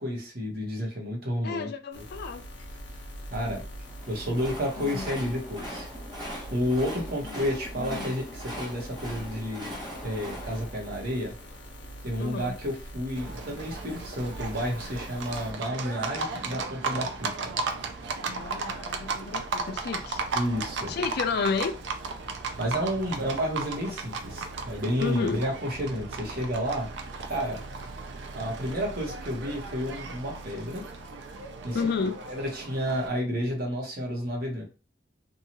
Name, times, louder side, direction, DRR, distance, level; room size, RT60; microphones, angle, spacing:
voice 1, 0.0-1.7 3.3-3.6 4.1-5.9 6.5-9.7 10.0-11.3 12.0-17.5 20.3-20.9 22.6-26.9 27.3-27.6 28.3-30.8 31.6-31.9 32.3-34.6, equal, 55° right, 0.9 m, -31 dB
voice 2, 1.4-2.4 4.8-5.1 7.2-7.4 7.8-8.1 12.2-12.6 18.2-20.2 20.9-21.7 25.0-25.4 31.7-32.2, left 5 dB, 55° left, 0.3 m, -31 dB
sound 1, 1.9-15.5, equal, 80° left, 0.8 m, -43 dB
Train, 3.8-12.0, equal, 25° right, 0.8 m, -41 dB
Livestock farm animals working animals, 13.2-33.1, right 4 dB, 70° right, 0.4 m, -36 dB
2.7 x 2.3 x 2.9 m
head